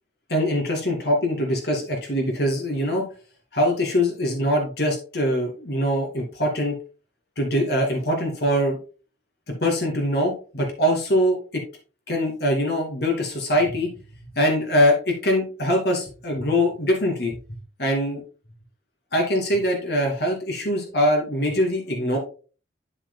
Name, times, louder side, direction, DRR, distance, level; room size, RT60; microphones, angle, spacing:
voice 1, 0.3-3.1 3.5-6.7 7.4-8.8 9.6-11.6 12.1-13.9 14.4-17.4 17.8-18.2 19.1-22.2, equal, 60° left, 2 dB, 2.4 m, -23 dB
8.4 x 7.4 x 2.2 m, 0.35 s
head